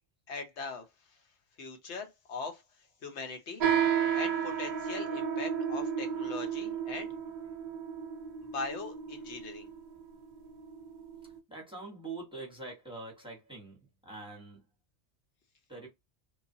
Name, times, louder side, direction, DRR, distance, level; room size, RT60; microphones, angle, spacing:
voice 1, 0.3-0.8 1.6-2.6 3.0-3.6 4.1-7.1 8.5-9.7, left 4 dB, 75° left, 1.1 m, -40 dB
sound 1, 3.6-11.4, right 8 dB, 55° right, 0.6 m, -33 dB
voice 2, 11.5-14.6 15.7-15.9, right 3 dB, 5° right, 0.9 m, -44 dB
3.1 x 2.1 x 2.7 m
omnidirectional pair, 1.2 m